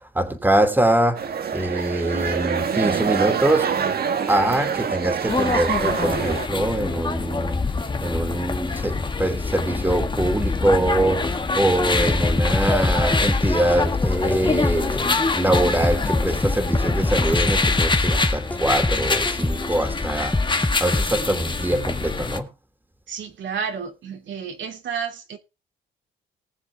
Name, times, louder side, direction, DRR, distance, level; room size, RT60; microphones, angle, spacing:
voice 1, 0.1-1.2 1.5-3.7 4.3-7.6 8.0-20.4 20.8-22.5, right 1 dB, 10° right, 2.8 m, -23 dB
sound 1, 1.2-6.5, right 7 dB, 50° right, 1.8 m, -25 dB
sound 2, 5.3-22.4, left 4 dB, 25° left, 1.6 m, -25 dB
sound 3, 11.9-15.0 15.5-19.8 20.3-21.1, left 1 dB, 10° left, 1.0 m, -24 dB
voice 2, 23.1-25.4, right 6 dB, 70° right, 2.8 m, -31 dB
19.0 x 7.0 x 3.5 m
cardioid pair, 90°, 20 cm